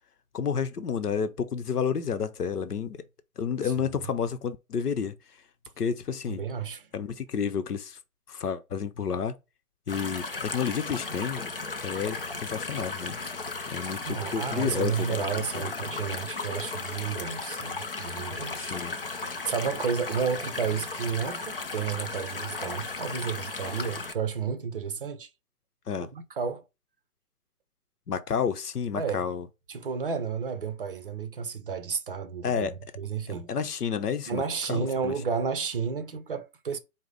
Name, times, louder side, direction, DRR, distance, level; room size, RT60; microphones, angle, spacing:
voice 1, 0.3-3.0 3.4-5.1 5.8-6.4 6.9-8.0 8.3-9.3 9.9-11.5 11.8-13.2 13.7-15.7 18.5-19.0 25.9-26.1 28.1-29.5 32.4-32.7 33.3-34.4 34.7-35.1, left 6 dB, 90° left, 0.7 m, -30 dB
voice 2, 6.3-6.9 14.0-18.8 19.2-25.3 26.0-26.6 29.0-29.3 29.7-33.5 34.3-36.8, right 6 dB, 40° right, 0.6 m, -32 dB
sound 1, 9.9-24.1, left 3 dB, 40° left, 0.4 m, -35 dB
4.7 x 2.1 x 3.8 m
figure-of-eight pair, 150°, 45 cm